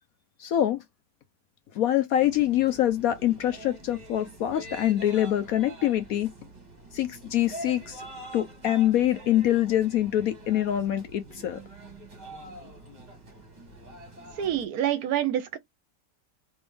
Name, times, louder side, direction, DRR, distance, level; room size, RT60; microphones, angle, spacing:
voice 1, 0.4-0.8 1.7-6.3 6.9-8.0 8.3-11.6, left 12 dB, 70° left, 0.9 m, -25 dB
sound 1, 2.2-14.7, right 1 dB, 25° right, 1.2 m, -45 dB
voice 2, 14.4-15.6, right 11 dB, 65° right, 1.0 m, -27 dB
3.2 x 3.0 x 3.3 m
omnidirectional pair, 1.9 m